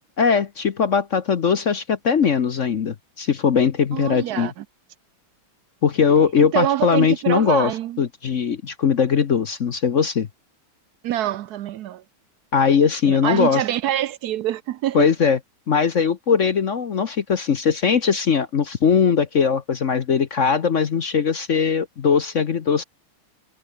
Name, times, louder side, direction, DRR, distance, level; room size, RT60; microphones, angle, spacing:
voice 1, 0.2-4.5 5.8-7.7 8.0-10.3 12.5-13.6 14.9-15.4 15.7-22.8, left 6 dB, 50° left, 0.9 m, -20 dB
voice 2, 3.9-4.6 6.5-8.0 11.0-12.0 13.1-15.1, right 12 dB, 85° right, 0.8 m, -25 dB
omnidirectional pair, 2.4 m